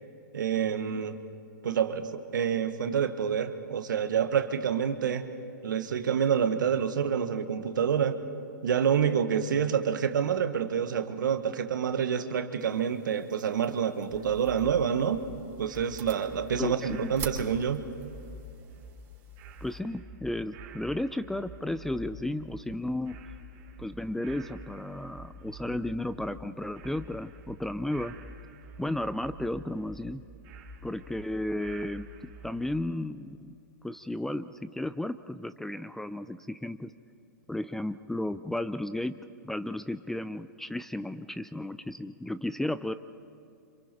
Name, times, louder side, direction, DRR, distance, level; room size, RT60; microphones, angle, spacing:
voice 1, 0.3-1.2 1.6-5.3 5.6-8.2 8.6-15.2 15.6-17.8, right 7 dB, 70° right, 8 dB, 1.6 m, -27 dB
sound 1, 12.6-19.8, right 5 dB, 25° right, 5.0 m, -46 dB
sound 2, 14.1-32.8, equal, 40° right, 3.2 m, -48 dB
voice 2, 16.6-17.1 19.6-23.2 23.8-28.2 28.8-30.2 30.8-32.1 32.4-33.5 33.8-36.9 37.5-39.1 39.4-42.9, left 1 dB, 5° left, 13 dB, 0.5 m, -33 dB
29.5 x 27.0 x 4.5 m, 2.5 s
hypercardioid pair, 120°, 11 cm